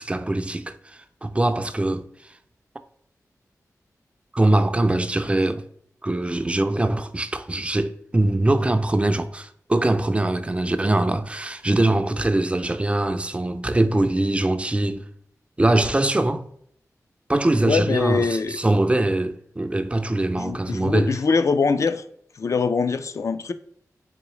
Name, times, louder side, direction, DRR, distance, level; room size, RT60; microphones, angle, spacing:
voice 1, 0.0-2.1 4.3-5.6 6.0-15.0 15.6-16.5 17.3-21.1, right 2 dB, 20° right, 0.4 m, -22 dB
voice 2, 17.6-18.6 20.4-22.0 22.4-23.5, left 4 dB, 55° left, 0.3 m, -23 dB
3.8 x 3.1 x 3.0 m
cardioid pair, 55°, 6 cm